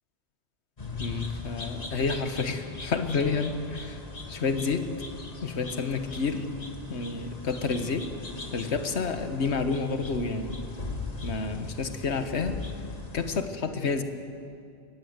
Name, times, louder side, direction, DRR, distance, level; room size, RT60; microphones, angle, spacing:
sound 1, 0.8-13.5, left 2 dB, 30° left, 1.7 m, -40 dB
voice 1, 1.0-4.0 4.3-4.9 5.4-6.5 6.9-8.1 8.5-10.6 11.2-12.6 13.1-14.0, left 4 dB, 60° left, 8 dB, 1.5 m, -29 dB
23.5 x 18.5 x 8.1 m, 2.4 s
omnidirectional pair, 1.3 m